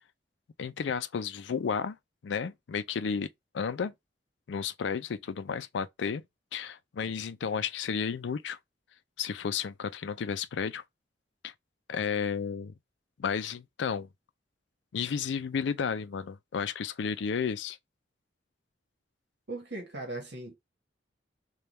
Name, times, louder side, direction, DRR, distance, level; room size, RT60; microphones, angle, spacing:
voice 1, 0.6-2.0 2.2-3.9 4.5-6.2 6.5-8.6 9.2-10.8 11.4-11.5 11.9-12.7 13.2-14.1 14.9-17.8, left 6 dB, 75° left, 0.4 m, -32 dB
voice 2, 19.5-20.6, right 2 dB, 65° right, 1.2 m, -38 dB
3.4 x 2.3 x 4.1 m
head